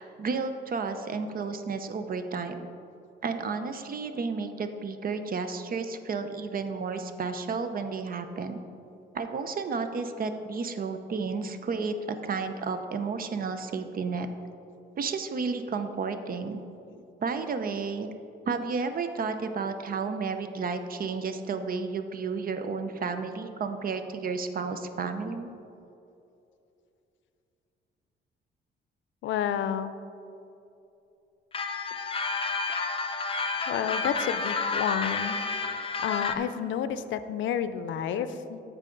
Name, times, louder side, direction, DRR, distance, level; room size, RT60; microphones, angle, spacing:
voice 1, 0.0-2.7 3.2-8.6 9.1-14.3 15.0-16.6 17.2-18.1 18.5-25.5, right 4 dB, 45° right, 8 dB, 0.7 m, -32 dB
voice 2, 29.2-29.9 33.7-35.4 36.0-38.6, left 9 dB, 75° left, 12 dB, 0.5 m, -30 dB
sound 1, 31.5-36.3, left 4 dB, 25° left, 0.6 m, -30 dB
13.5 x 4.9 x 3.9 m, 2.8 s
cardioid pair, 90°, 20 cm